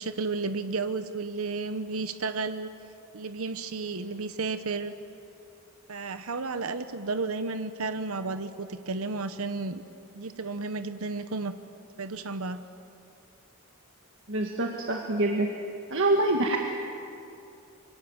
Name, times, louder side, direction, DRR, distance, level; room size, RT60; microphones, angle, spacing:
voice 1, 0.0-2.7 3.1-4.9 5.9-9.8 10.1-11.5 12.0-12.6, right 3 dB, 85° right, 10 dB, 1.0 m, -32 dB
voice 2, 14.3-15.5 15.9-16.6, right 2 dB, 60° right, 1 dB, 1.8 m, -25 dB
26.5 x 24.5 x 7.3 m, 2.7 s
head